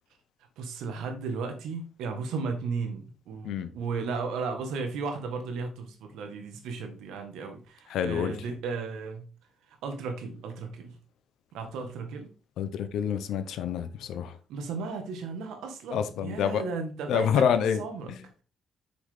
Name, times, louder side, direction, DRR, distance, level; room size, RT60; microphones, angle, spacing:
voice 1, 0.6-9.3 9.7-11.0 11.5-12.3 14.5-18.1, right 4 dB, 85° right, 1.6 m, -35 dB
voice 2, 7.9-8.3 12.6-14.4 15.9-16.6 17.1-17.8 18.1-18.2, left 8 dB, 80° left, 0.9 m, -27 dB
6.1 x 6.0 x 3.7 m
cardioid pair, 75°, 0 cm